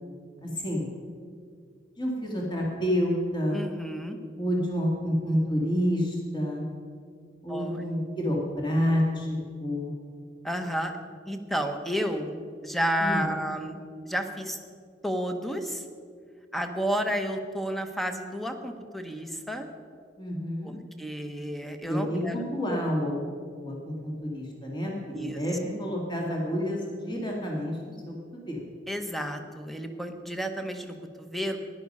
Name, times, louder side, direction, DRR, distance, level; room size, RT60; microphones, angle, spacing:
voice 1, 0.4-0.9 2.0-3.6 4.3-6.6 7.4-9.9 13.0-13.3 20.2-20.7 21.8-28.6, equal, 25° left, -2 dB, 2.1 m, -29 dB
voice 2, 3.5-4.2 7.5-7.9 10.4-11.0 11.3-13.8 14.1-14.6 15.0-15.8 16.5-19.7 20.6-22.4 25.1-25.4 28.9-31.6, equal, ahead, 6 dB, 1.0 m, -31 dB
14.5 x 11.0 x 5.4 m, 2.1 s
head